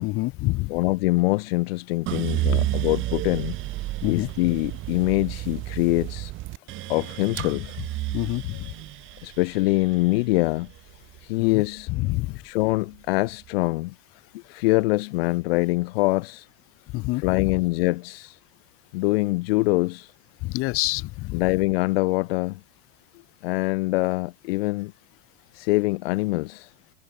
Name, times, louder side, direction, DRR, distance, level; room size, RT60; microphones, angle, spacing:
voice 1, 0.0-0.7 2.5-2.7 4.0-4.3 8.1-8.7 11.4-11.6 11.9-12.4 16.9-17.5 20.4-21.4, left 21 dB, 45° left, 3.9 m, -27 dB
voice 2, 0.7-3.6 4.0-6.3 6.9-7.8 9.2-10.7 11.2-11.9 12.4-13.9 14.3-16.5 17.1-18.4 18.9-20.1 21.3-22.6 23.4-24.9 25.5-26.7, left 22 dB, 65° left, 1.3 m, -24 dB
sound 1, 2.1-12.3 12.7-13.5, right 17 dB, 40° right, 3.5 m, -31 dB
supercardioid pair, 155°, 32 cm